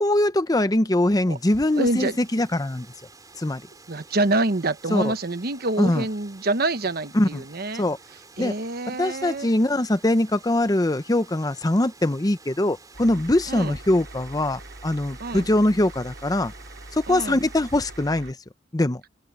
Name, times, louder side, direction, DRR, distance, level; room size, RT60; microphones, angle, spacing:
voice 1, 0.0-2.9 3.4-3.6 4.9-5.1 5.8-6.1 7.1-7.4 7.8-8.0 8.4-8.5 9.0-16.5 16.9-18.4 18.7-19.0, left 1 dB, 20° left, 0.7 m, -22 dB
Water, 1.1-18.3, right 3 dB, 20° right, 3.9 m, -50 dB
voice 2, 1.8-2.2 3.9-7.9 8.4-9.5 13.5-13.8 15.2-15.5 17.1-17.4, right 2 dB, 50° right, 1.1 m, -26 dB
sound 1, 12.9-18.3, right 2 dB, 70° right, 4.0 m, -43 dB
open air
head